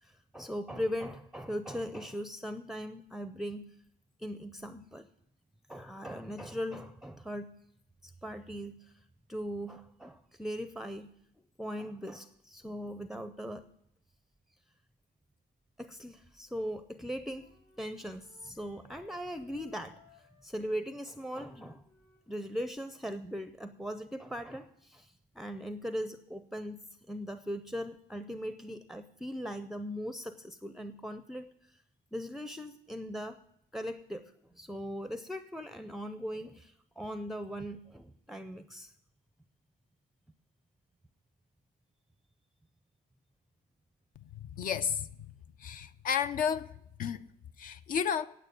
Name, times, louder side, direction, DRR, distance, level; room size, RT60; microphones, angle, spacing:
voice 1, 0.0-3.6 4.2-5.1 5.7-7.5 8.0-8.9 9.3-11.1 11.6-13.6 15.8-17.5 17.8-21.8 22.3-31.8 32.1-33.4 33.7-38.9, equal, ahead, 0.5 m, -39 dB
Wind instrument woodwind instrument, 17.2-22.6, left 5 dB, 80° left, 4.2 m, -64 dB
voice 2, 44.6-45.1 45.6-46.7 47.0-47.3 47.6-48.3, left 7 dB, 55° left, 0.5 m, -31 dB
9.1 x 8.8 x 9.6 m
cardioid pair, 110°, 17 cm